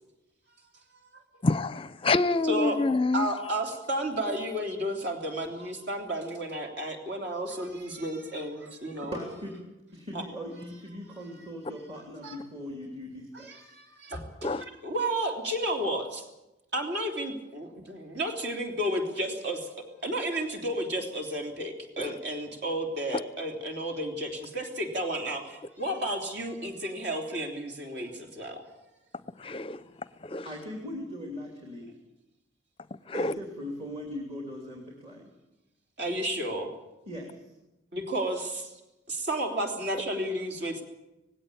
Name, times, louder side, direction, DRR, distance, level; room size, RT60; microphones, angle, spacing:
voice 1, 1.4-3.3 14.4-14.6 22.0-22.1 29.4-29.8 30.2-30.5 33.1-33.3, left 3 dB, 25° left, 0.6 m, -27 dB
voice 2, 2.4-2.8 3.1-9.2 10.1-10.2 11.3-11.4 12.2-12.4 13.3-16.3 16.7-19.7 20.0-28.6 36.0-36.7 37.9-38.7 39.1-40.8, right 1 dB, 55° right, 3.4 m, -32 dB
voice 3, 9.0-9.6 9.9-13.7 30.4-31.9 33.1-35.3 37.1-37.3, equal, 30° right, 3.1 m, -39 dB
19.0 x 16.5 x 8.5 m
head